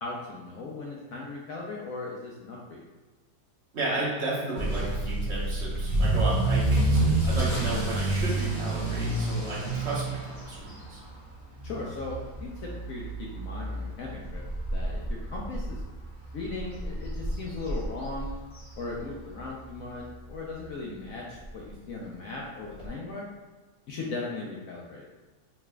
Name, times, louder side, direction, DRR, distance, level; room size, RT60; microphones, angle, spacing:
voice 1, 0.0-2.8 11.6-14.4 14.7-15.8 16.3-18.3 18.8-23.3 23.9-25.0, left 3 dB, 70° left, -3 dB, 0.8 m, -38 dB
voice 2, 3.7-11.0, right 2 dB, 50° right, -6 dB, 1.0 m, -33 dB
Motor vehicle (road) / Accelerating revving vroom, 4.6-19.4 19.7-20.1 20.6-20.7 21.0-21.1 21.4-21.5 22.8-22.9, right 2 dB, 20° right, 1.1 m, -29 dB
4.6 x 3.3 x 2.2 m, 1.3 s
omnidirectional pair, 1.9 m